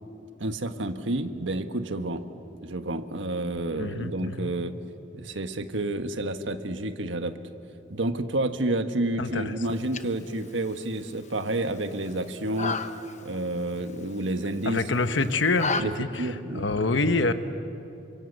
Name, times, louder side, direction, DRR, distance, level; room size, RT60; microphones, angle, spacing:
voice 1, 0.4-2.2 2.6-4.7 5.1-7.3 7.9-12.8 13.2-14.8 15.8-15.9 16.2-16.7, right 2 dB, 85° right, 7 dB, 1.5 m, -29 dB
voice 2, 3.8-4.5 9.2-9.6 14.6-17.3, left 3 dB, 75° left, 9 dB, 1.2 m, -26 dB
sound 1, 9.6-15.8, left 4 dB, 40° left, 1.0 m, -36 dB
29.0 x 25.0 x 8.1 m, 2.8 s
head